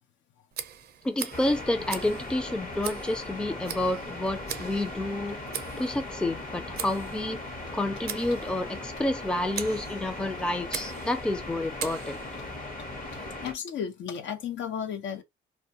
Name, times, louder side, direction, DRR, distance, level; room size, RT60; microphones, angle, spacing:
Tick, 0.5-12.6, right 8 dB, 55° right, 0.5 m, -42 dB
voice 1, 1.0-5.4 5.8-7.4 7.7-12.2, left 1 dB, 5° left, 0.4 m, -29 dB
sound 1, 1.3-13.5, left 2 dB, 45° left, 0.9 m, -38 dB
voice 2, 13.1-15.2, left 8 dB, 70° left, 0.6 m, -34 dB
2.2 x 2.2 x 2.7 m
cardioid pair, 90°, 20 cm